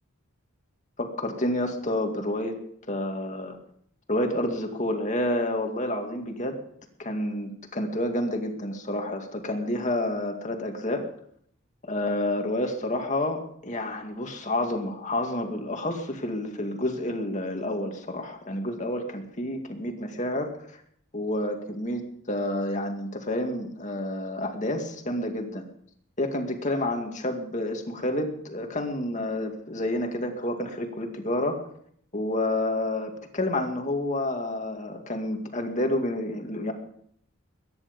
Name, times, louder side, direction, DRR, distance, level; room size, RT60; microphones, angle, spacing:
voice 1, 1.0-2.6 2.9-3.6 4.1-6.6 7.0-11.1 11.8-20.8 21.1-25.7 26.2-31.6 32.1-36.7, left 1 dB, 35° left, 4 dB, 2.2 m, -29 dB
22.5 x 10.5 x 5.3 m, 0.67 s
head